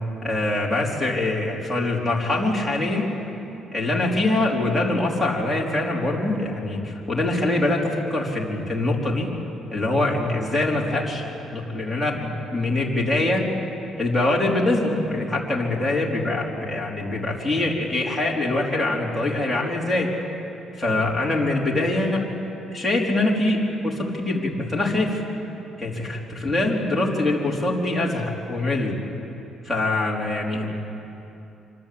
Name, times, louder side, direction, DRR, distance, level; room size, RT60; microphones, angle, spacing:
voice 1, 0.2-3.1 3.7-9.3 9.7-11.2 11.5-13.5 14.0-20.1 20.8-22.2 22.7-25.2 25.8-29.0 29.6-30.7, left 2 dB, ahead, -1 dB, 4.3 m, -24 dB
26.0 x 26.0 x 8.8 m, 2.8 s
cardioid pair, 160°, 0 cm